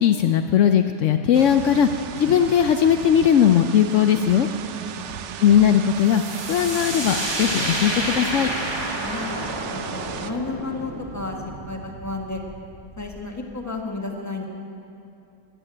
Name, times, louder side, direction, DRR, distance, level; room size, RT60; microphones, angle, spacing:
voice 1, 0.0-1.9 2.2-4.5 5.4-6.2 6.5-8.5, left 9 dB, 80° left, 7 dB, 0.6 m, -18 dB
sound 1, 1.3-10.3, right 8 dB, 70° right, 0.6 m, -36 dB
voice 2, 4.7-5.1 9.0-9.3 9.7-11.4 11.7-12.4 13.0-14.4, left 3 dB, 10° left, 1 dB, 1.4 m, -32 dB
sound 2, 6.1-13.7, right 1 dB, 15° right, 1.2 m, -30 dB
14.5 x 9.9 x 8.9 m, 2.6 s
omnidirectional pair, 1.9 m